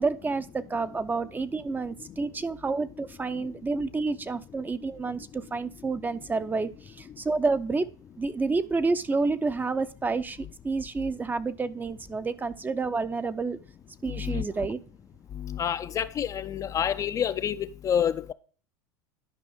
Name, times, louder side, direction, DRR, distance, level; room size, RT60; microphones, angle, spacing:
voice 1, 0.0-7.9 8.2-13.6 14.0-14.8, right 3 dB, 15° right, 0.6 m, -29 dB
voice 2, 14.1-14.4 15.4-18.3, left 9 dB, 30° left, 0.5 m, -28 dB
11.0 x 5.3 x 3.5 m
hypercardioid pair, 90°, 11 cm